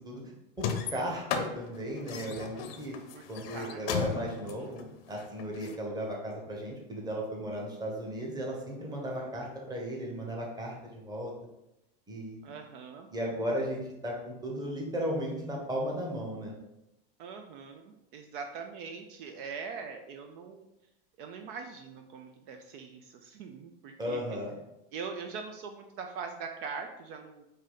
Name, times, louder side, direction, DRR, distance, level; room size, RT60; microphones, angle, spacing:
sound 1, 0.6-5.8, left 6 dB, 75° left, 0.7 m, -35 dB
voice 1, 0.6-2.9 3.3-11.3 12.1-12.4 13.1-16.6 24.0-24.6, equal, 15° right, -1 dB, 1.0 m, -35 dB
voice 2, 3.5-3.9 4.2-4.7 9.2-9.3 12.4-13.1 17.2-20.7 21.2-24.2 24.9-27.4, right 5 dB, 60° right, 5 dB, 0.6 m, -42 dB
4.8 x 2.8 x 3.8 m, 0.89 s
supercardioid pair, 130°, 29 cm